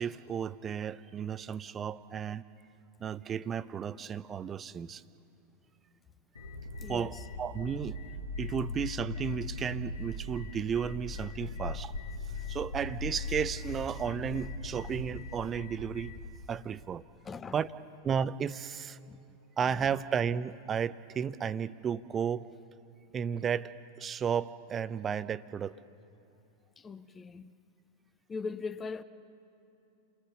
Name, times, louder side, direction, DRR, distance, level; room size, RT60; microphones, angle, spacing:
voice 1, 0.0-2.4 3.0-5.0 6.9-8.0 8.4-11.9 12.5-16.1 16.5-17.0 17.5-17.7 18.0-19.0 19.6-22.5 23.1-23.7 24.0-25.8, right 7 dB, 25° right, 0.6 m, -33 dB
sound 1, 6.3-16.4, left 3 dB, 75° left, 1.5 m, -39 dB
voice 2, 6.8-7.2 17.2-17.6 19.1-19.2 19.7-19.9 26.8-27.5 28.3-29.0, left 4 dB, 20° left, 0.7 m, -40 dB
29.5 x 19.0 x 6.8 m
figure-of-eight pair, 90°, 0 cm